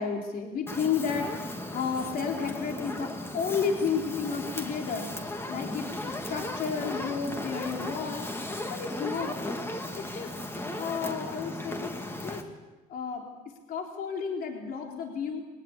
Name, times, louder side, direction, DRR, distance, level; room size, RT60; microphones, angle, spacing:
voice 1, 0.0-8.3 8.7-9.6 10.0-10.3 10.7-12.4 12.9-15.4, left 6 dB, 60° left, 1 dB, 3.7 m, -32 dB
Fire, 0.7-12.4, left 1 dB, 15° left, 2.5 m, -36 dB
22.5 x 18.5 x 8.6 m, 1.2 s
cardioid pair, 110°, 17 cm